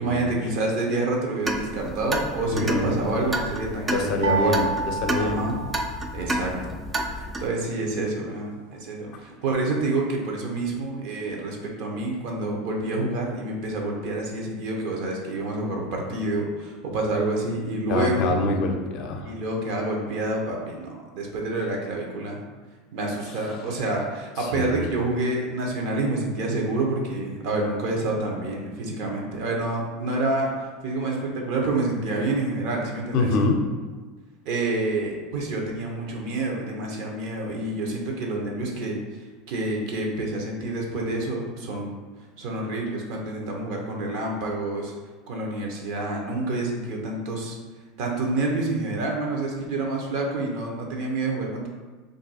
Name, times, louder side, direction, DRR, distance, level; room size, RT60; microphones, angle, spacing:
voice 1, 0.0-4.6 5.2-5.6 6.1-6.7 7.4-18.3 19.2-22.4 22.9-30.5 30.8-33.3 34.4-39.0 39.5-41.9 42.4-44.9 45.3-47.6 48.0-51.7, right 2 dB, 65° right, 0 dB, 0.8 m, -28 dB
sound 1, 1.4-7.5, right 1 dB, 15° right, 0.4 m, -30 dB
voice 2, 2.5-3.0 3.9-5.4 17.9-19.3 24.4-24.8 33.1-33.6, left 3 dB, 60° left, 3 dB, 0.5 m, -25 dB
sound 2, 4.2-6.4, right 4 dB, 90° right, 0.3 m, -29 dB
2.5 x 2.3 x 4.1 m, 1.4 s
supercardioid pair, 105°, 0 cm